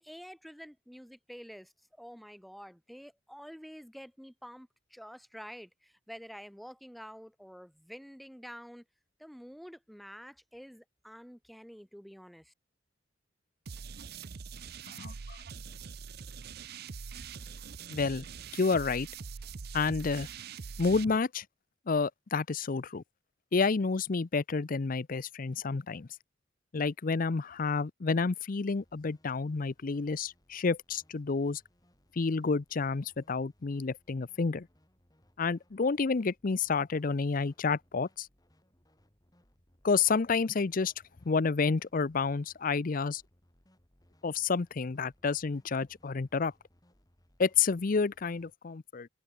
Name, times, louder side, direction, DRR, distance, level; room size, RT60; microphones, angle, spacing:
voice 1, 0.0-1.7 2.0-8.8 9.2-12.5, equal, ahead, 3.4 m, -48 dB
sound 1, 13.7-21.1, right 5 dB, 55° right, 0.6 m, -43 dB
voice 2, 14.9-15.4 17.9-18.2 18.5-19.1 19.7-20.3 20.8-21.4 21.9-23.0 23.5-26.1 26.7-31.6 32.2-34.7 35.4-38.3 39.8-40.9 41.3-43.2 44.2-46.5 47.4-49.1, left 4 dB, 45° left, 0.6 m, -29 dB
sound 2, 28.7-48.5, equal, 20° left, 7.0 m, -68 dB
head